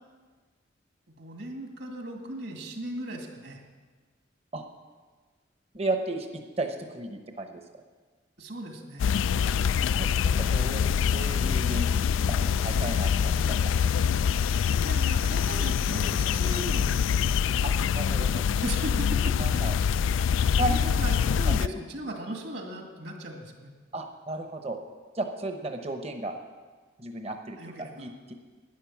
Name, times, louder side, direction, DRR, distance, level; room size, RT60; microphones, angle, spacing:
voice 1, 1.1-3.6 8.4-9.2 14.8-17.0 18.4-19.7 20.3-23.7 27.6-28.1, right 1 dB, 60° right, 2 dB, 2.1 m, -38 dB
voice 2, 5.7-7.6 9.5-9.6 9.9-10.8 11.1-11.9 12.3-14.2 17.6-18.4 19.4-19.7 20.6-20.8 21.5-21.6 23.9-24.8 25.1-26.3 27.0-28.3, right 2 dB, 35° right, 5 dB, 1.0 m, -34 dB
sound 1, 9.0-21.7, left 7 dB, 85° left, 0.3 m, -25 dB
12.0 x 10.0 x 7.3 m, 1.4 s
head